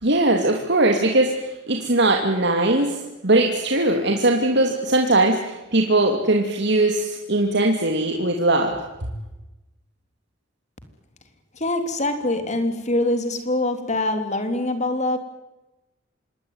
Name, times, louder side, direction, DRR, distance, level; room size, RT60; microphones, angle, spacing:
voice 1, 0.0-8.8, right 2 dB, 60° right, 2 dB, 2.8 m, -20 dB
voice 2, 11.6-15.2, left 2 dB, 40° left, 8 dB, 3.4 m, -24 dB
26.5 x 20.5 x 9.7 m, 1.0 s
head